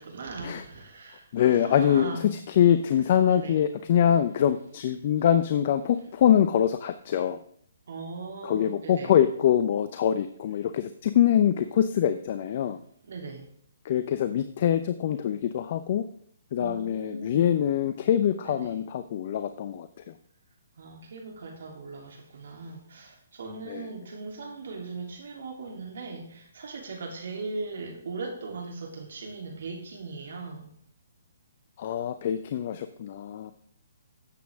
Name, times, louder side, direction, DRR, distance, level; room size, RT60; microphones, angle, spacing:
voice 1, 0.0-2.3 3.3-3.6 7.9-9.1 13.1-13.5 16.5-17.5 18.4-18.8 20.8-30.7, right 3 dB, 65° right, 2 dB, 3.1 m, -39 dB
voice 2, 1.3-7.4 8.4-12.8 13.8-16.0 16.5-20.2 23.6-23.9 31.8-33.5, left 10 dB, 45° left, 11 dB, 0.6 m, -24 dB
12.5 x 8.2 x 3.6 m, 0.62 s
hypercardioid pair, 140°, 0 cm